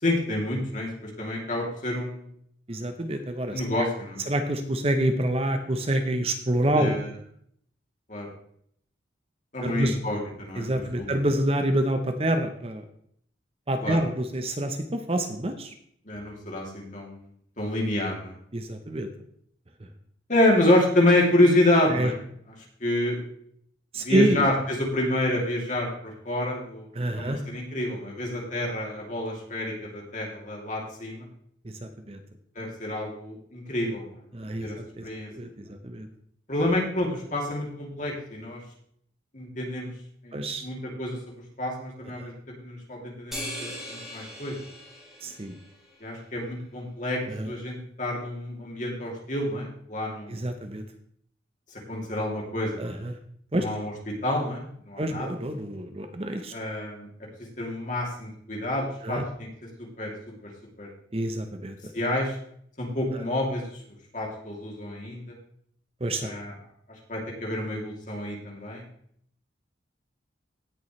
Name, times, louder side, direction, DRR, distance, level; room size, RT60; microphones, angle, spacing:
voice 1, 0.0-2.2 3.5-4.2 6.7-7.1 8.1-8.3 9.5-11.1 13.8-14.0 16.1-17.2 17.6-18.3 20.3-22.2 22.8-23.2 24.0-31.3 32.5-34.2 34.6-34.8 35.0-35.3 36.5-38.6 39.3-39.9 40.2-41.2 41.6-42.3 42.6-44.6 46.0-47.2 47.4-50.4 51.9-52.8 53.6-55.3 56.5-57.1 57.6-59.5 59.8-60.1 60.8-60.9 61.9-62.3 62.8-63.7 64.1-65.2 66.2-66.5 67.1-68.8, left 1 dB, 40° left, -1 dB, 2.7 m, -28 dB
voice 2, 2.7-3.9 4.3-7.0 9.6-10.0 10.5-12.8 13.7-15.7 18.5-19.1 21.9-22.1 23.9-24.5 26.9-27.4 31.6-32.2 34.3-34.7 35.0-35.1 35.3-36.1 40.3-40.6 42.2-42.3 45.2-45.6 47.3-47.5 50.3-50.8 52.8-53.1 53.5-53.6 55.0-56.5 59.0-59.2 61.1-61.8 63.1-63.2 66.0-66.4, right 1 dB, 30° right, 7 dB, 0.8 m, -27 dB
sound 1, 43.3-46.0, equal, ahead, 4.3 m, -39 dB
17.0 x 7.0 x 3.2 m, 0.66 s
head